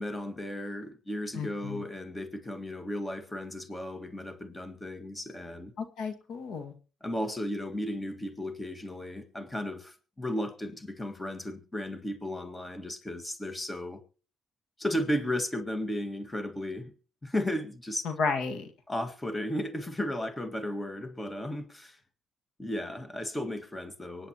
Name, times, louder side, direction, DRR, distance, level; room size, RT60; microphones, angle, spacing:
voice 1, 0.0-5.7 7.0-14.0 14.8-16.9 17.2-18.1 18.9-22.0 22.6-24.3, left 1 dB, 15° left, 1.8 m, -34 dB
voice 2, 1.3-1.8 5.8-6.7 18.1-18.7, left 4 dB, 75° left, 1.9 m, -32 dB
24.0 x 9.9 x 3.0 m
cardioid pair, 90°, 0 cm